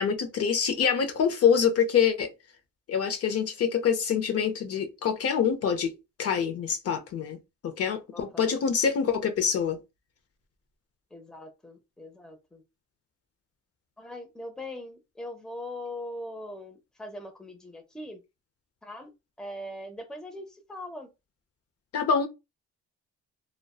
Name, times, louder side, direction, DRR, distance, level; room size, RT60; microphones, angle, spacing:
voice 1, 0.0-2.3 2.9-5.9 6.2-7.4 7.6-9.8 21.9-22.3, left 7 dB, 50° left, 0.6 m, -25 dB
voice 2, 8.1-8.5 11.1-12.6 14.0-18.2 18.8-19.1 19.4-21.1, left 1 dB, ahead, 0.5 m, -41 dB
2.6 x 2.1 x 2.3 m
cardioid pair, 90°, 30 cm